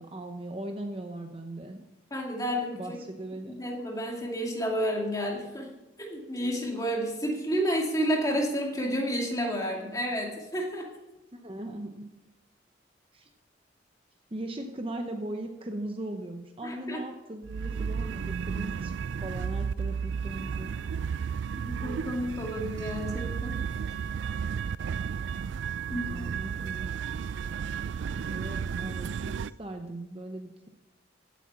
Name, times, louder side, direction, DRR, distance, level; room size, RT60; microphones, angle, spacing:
voice 1, 0.0-1.8 2.7-3.6 11.3-12.0 13.1-13.3 14.3-18.9 19.2-20.7 25.7-26.9 28.1-30.7, right 1 dB, 30° right, 5 dB, 0.8 m, -39 dB
voice 2, 2.1-3.0 3.6-5.7 6.0-10.9 16.6-17.0 21.5-23.7 25.9-26.3, equal, 15° left, 0 dB, 2.4 m, -30 dB
sound 1, 17.4-29.5, right 6 dB, 65° right, 0.3 m, -33 dB
16.0 x 8.4 x 5.9 m, 1.0 s
head